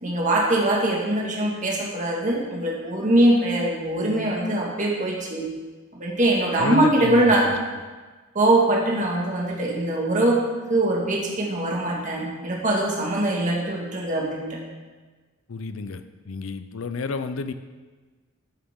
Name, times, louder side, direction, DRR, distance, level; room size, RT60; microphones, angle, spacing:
voice 1, 0.0-5.5 5.9-7.5 8.4-10.4 10.7-14.6, right 1 dB, 40° right, -3 dB, 1.9 m, -22 dB
voice 2, 6.6-7.5 15.5-17.5, left 4 dB, 85° left, 10 dB, 0.6 m, -30 dB
12.5 x 7.1 x 3.7 m, 1.3 s
head